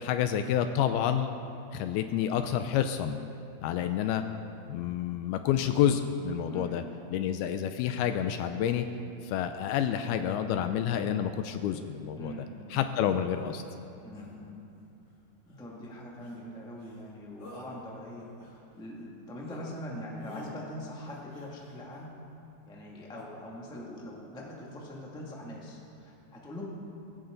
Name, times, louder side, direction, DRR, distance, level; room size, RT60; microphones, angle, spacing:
voice 1, 0.0-1.3 1.7-3.2 3.6-4.2 4.7-6.8 7.1-8.9 9.2-12.3 12.7-13.6, left 9 dB, 80° left, 8 dB, 2.4 m, -29 dB
voice 2, 6.5-6.9 12.1-12.7 14.0-14.6 15.4-22.1 22.7-26.7, left 1 dB, 5° left, -4 dB, 0.8 m, -43 dB
sound 1, 13.0-13.7 14.1-14.3 15.5-15.7 16.2-16.5 16.8-17.1 17.4-17.7 18.2-19.1 19.4-19.6 20.2-20.5 21.1-22.0 23.1-23.2, left 1 dB, 30° left, 2.2 m, -49 dB
20.5 x 16.0 x 3.9 m, 2.7 s
omnidirectional pair, 4.7 m